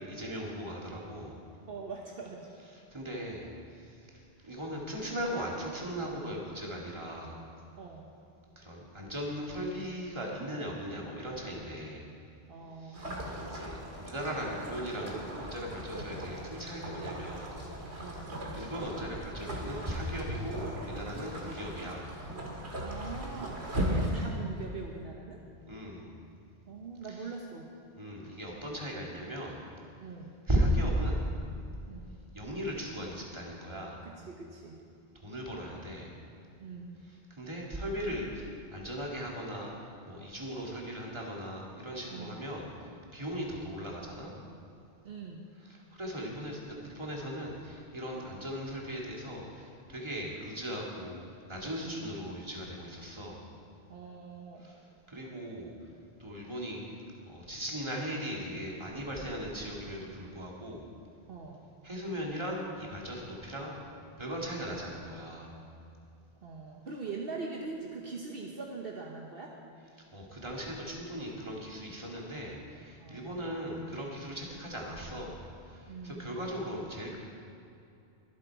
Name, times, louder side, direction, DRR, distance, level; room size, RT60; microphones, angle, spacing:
voice 1, 0.0-1.4 2.7-7.4 8.6-12.1 12.8-18.1 18.5-22.1 25.7-26.1 27.2-27.3 28.0-29.6 30.5-31.3 32.3-34.0 35.1-36.1 37.1-44.3 45.6-53.4 54.6-55.9 56.2-57.0 57.3-60.9 61.8-63.8 64.2-65.5 70.1-77.2, equal, 25° right, -3 dB, 2.2 m, -38 dB
voice 2, 1.7-2.5 7.8-8.2 12.5-13.4 18.0-18.4 22.8-25.4 26.7-27.7 30.0-30.4 31.9-32.1 34.0-34.8 36.6-37.1 42.1-42.4 45.0-45.5 51.8-52.0 53.9-54.7 61.3-61.6 66.4-69.5 72.1-72.5 73.0-73.7 75.9-76.5, right 4 dB, 60° right, 0 dB, 1.2 m, -43 dB
sound 1, 12.9-24.1, equal, 85° right, 2.2 m, -38 dB
23.0 x 7.9 x 4.7 m, 2.6 s
omnidirectional pair, 1.1 m